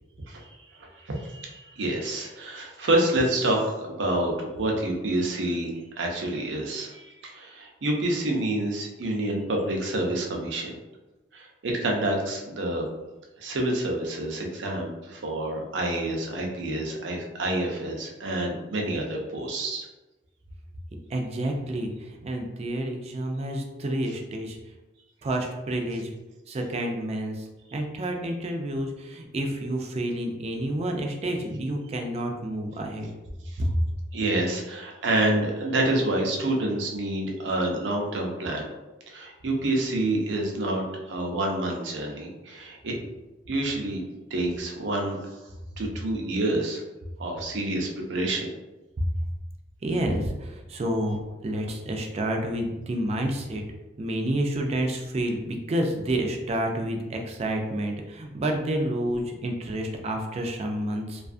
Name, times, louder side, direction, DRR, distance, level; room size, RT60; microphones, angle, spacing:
voice 1, 0.3-10.8 11.3-12.8 13.4-19.9 33.4-33.6 34.1-38.7 39.1-42.9 43.5-44.0 44.3-45.3 45.8-46.8 47.2-48.5, right 1 dB, 85° right, 1 dB, 0.6 m, -28 dB
voice 2, 21.1-24.6 25.2-26.1 26.5-27.3 27.7-33.1 33.6-33.7 49.8-51.2 51.4-53.6 54.0-61.2, right 1 dB, 35° right, 2 dB, 0.3 m, -29 dB
2.4 x 2.3 x 2.4 m, 1.1 s
head